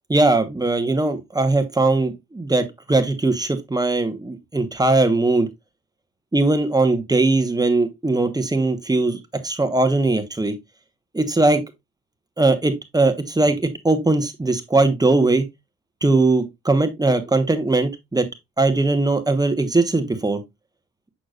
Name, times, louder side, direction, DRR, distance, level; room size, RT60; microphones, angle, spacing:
voice 1, 0.1-5.5 6.3-10.5 11.1-11.6 12.4-15.4 16.0-18.2 18.6-20.4, right 2 dB, 15° right, 1.1 m, -20 dB
6.6 x 6.0 x 2.4 m
cardioid pair, 90°, 30 cm